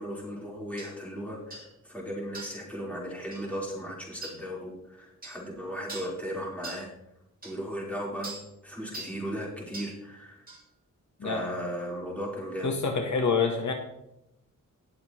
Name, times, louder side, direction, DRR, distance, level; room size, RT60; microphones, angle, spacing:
voice 1, 0.0-6.9 7.4-10.4 11.2-12.7, equal, 5° left, -5 dB, 4.1 m, -36 dB
sound 1, 0.8-0.9 1.5-1.7 2.3-2.6 3.3-3.5 4.2-4.4 5.2-5.4 5.9-6.2 6.6-6.9 7.4-7.5 8.2-8.5 8.9-9.2 9.7-10.0 10.5-10.6, right 2 dB, 30° right, 3.0 m, -41 dB
voice 2, 12.6-13.7, left 5 dB, 65° left, 3 dB, 1.3 m, -26 dB
19.0 x 7.0 x 3.1 m, 0.83 s
wide cardioid pair, 135°, 31 cm